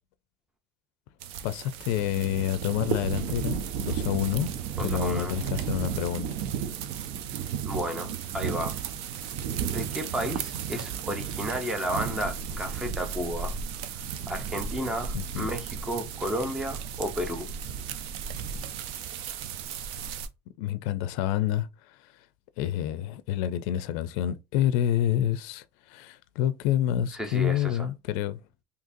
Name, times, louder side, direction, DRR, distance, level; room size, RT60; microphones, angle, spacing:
sound 1, 1.2-20.3, right 7 dB, 65° right, 0.4 m, -34 dB
voice 1, 1.4-3.6 3.8-4.5 4.8-6.3 15.1-15.5 20.6-21.7 22.6-28.4, left 11 dB, 75° left, 0.4 m, -28 dB
voice 2, 4.8-5.4 7.6-8.8 9.7-13.5 14.3-17.5 27.1-27.9, equal, 5° right, 0.6 m, -32 dB
3.8 x 2.7 x 2.6 m
cardioid pair, 170°, 10 cm